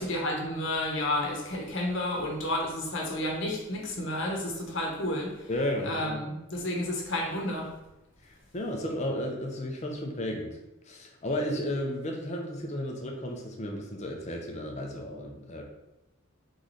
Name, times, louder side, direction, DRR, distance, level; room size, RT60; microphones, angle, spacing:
voice 1, 0.0-5.5 5.8-7.7, left 1 dB, 55° left, -1 dB, 1.0 m, -31 dB
voice 2, 5.5-6.2 8.2-10.6 10.9-15.6, left 1 dB, 30° left, 2 dB, 0.6 m, -33 dB
3.7 x 3.3 x 4.1 m, 0.93 s
head